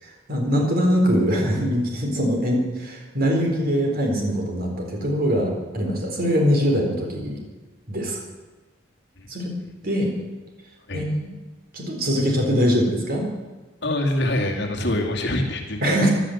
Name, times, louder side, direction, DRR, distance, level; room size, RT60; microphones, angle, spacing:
voice 1, 0.0-7.4 7.9-8.2 9.3-9.6 9.8-10.1 10.9-11.3 11.7-13.3 14.8-14.9 15.8-16.1, equal, 50° right, 1 dB, 4.1 m, -22 dB
voice 2, 13.8-15.8, left 1 dB, 65° left, 2 dB, 2.3 m, -25 dB
15.5 x 12.0 x 7.9 m, 1.2 s
head